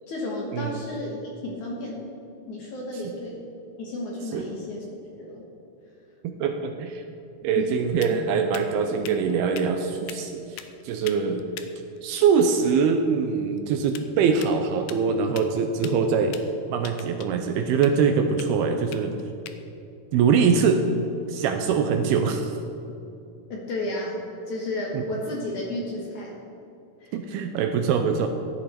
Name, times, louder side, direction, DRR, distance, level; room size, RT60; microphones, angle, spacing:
voice 1, 0.1-1.2 1.4-2.1 2.5-3.5 3.8-4.9 5.2-5.4 7.6-7.7 23.5-26.4 27.0-27.1, left 1 dB, 60° left, -2 dB, 2.2 m, -32 dB
voice 2, 6.2-7.0 7.4-11.4 12.0-16.4 16.7-19.2 20.1-20.8 21.3-22.6 24.9-25.0 27.1-28.3, right 6 dB, 80° right, 5 dB, 2.4 m, -23 dB
sound 1, 6.7-21.4, left 10 dB, 85° left, 2.1 m, -46 dB
15.5 x 11.0 x 4.3 m, 2.7 s
omnidirectional pair, 4.9 m